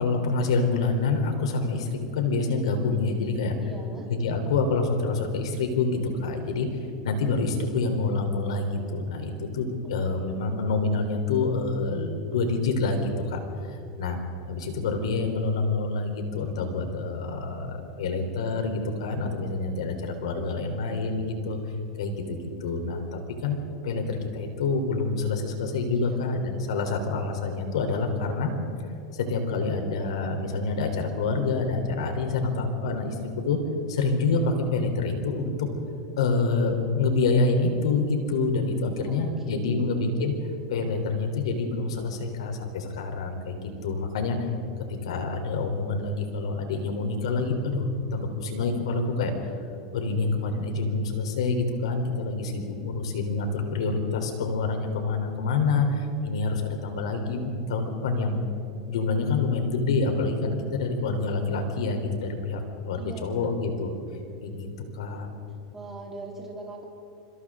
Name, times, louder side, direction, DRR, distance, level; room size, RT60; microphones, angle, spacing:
voice 1, 0.0-3.5 4.1-6.7 7.0-14.2 14.5-21.6 22.0-23.6 23.8-28.5 29.1-33.2 33.5-33.6 33.9-35.7 36.2-40.3 40.7-43.6 43.8-44.4 45.0-49.5 49.9-58.4 58.9-63.9 64.4-64.7 64.9-65.3, left 3 dB, 90° left, 5 dB, 3.6 m, -27 dB
voice 2, 3.6-4.1 9.8-10.7 26.0-26.2 39.0-40.0 62.9-63.5 65.7-66.8, right 3 dB, 10° right, -3 dB, 3.8 m, -42 dB
26.0 x 26.0 x 3.8 m, 2.6 s
supercardioid pair, 140°, 3 cm